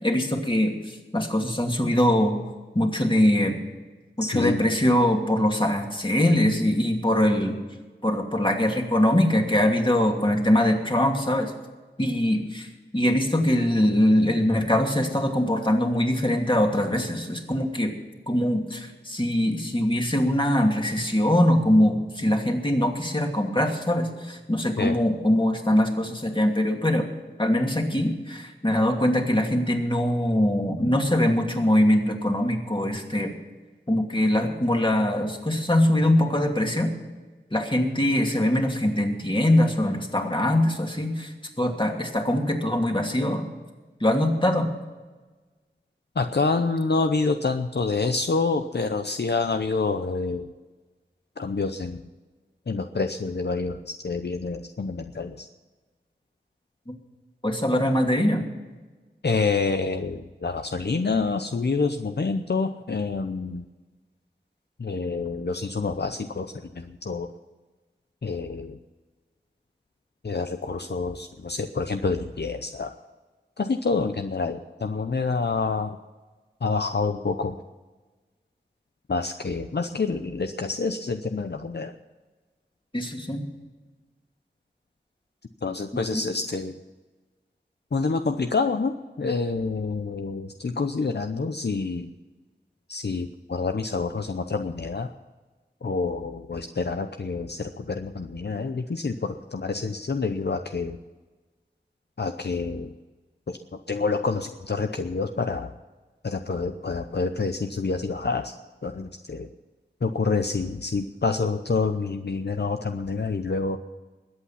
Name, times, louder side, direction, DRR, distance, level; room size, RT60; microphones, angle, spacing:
voice 1, 0.0-2.3 2.7-3.5 4.3-7.6 8.0-11.5 12.0-12.7 12.9-17.9 18.3-27.1 27.4-33.3 33.9-36.9 37.5-43.4 44.0-44.7 56.9-57.0 57.4-58.4 82.9-83.4 86.1-86.2, left 1 dB, 25° left, 2 dB, 2.6 m, -22 dB
voice 2, 4.2-4.6 24.8-25.0 46.1-50.5 51.4-52.0 52.7-55.5 59.2-63.7 64.8-67.3 68.2-68.8 70.2-72.9 73.6-76.0 76.6-77.5 79.1-81.9 85.6-86.8 87.9-92.1 92.9-95.1 95.8-101.0 102.2-102.9 103.5-103.6 103.9-105.7 106.2-108.5 108.8-109.5 110.0-113.8, left 4 dB, 60° left, 7 dB, 0.7 m, -27 dB
21.5 x 8.6 x 5.7 m, 1.3 s
wide cardioid pair, 55°, 19 cm